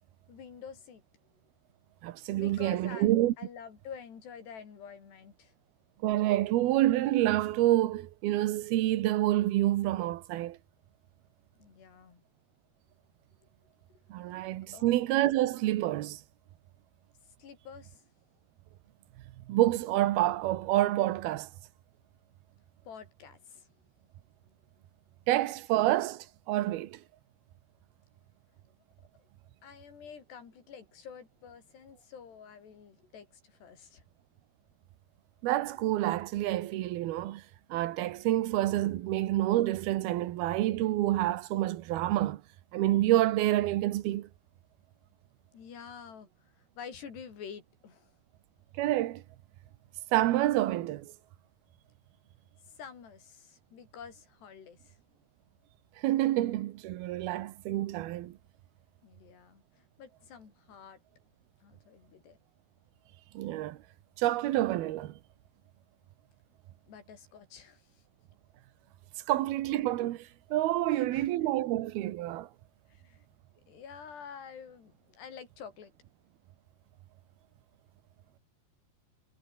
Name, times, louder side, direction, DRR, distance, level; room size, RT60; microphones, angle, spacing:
voice 1, 0.3-1.0 2.4-5.5 11.6-12.2 13.9-14.4 14.7-15.0 17.2-18.0 22.8-23.7 29.6-34.0 38.7-38.8 45.5-48.1 52.6-55.0 59.0-61.0 61.6-62.4 66.9-68.0 69.2-69.3 70.9-71.3 72.9-73.3 73.7-75.9, left 7 dB, 90° left, 6.3 m, -48 dB
voice 2, 2.0-3.3 6.0-10.6 14.1-16.2 19.5-21.5 25.3-27.0 35.4-37.4 37.7-42.4 42.7-44.3 48.8-49.2 50.1-51.1 56.0-58.4 63.3-63.8 64.2-65.2 69.3-72.5, right 15 dB, 75° right, 2.9 m, -28 dB
omnidirectional pair, 4.7 m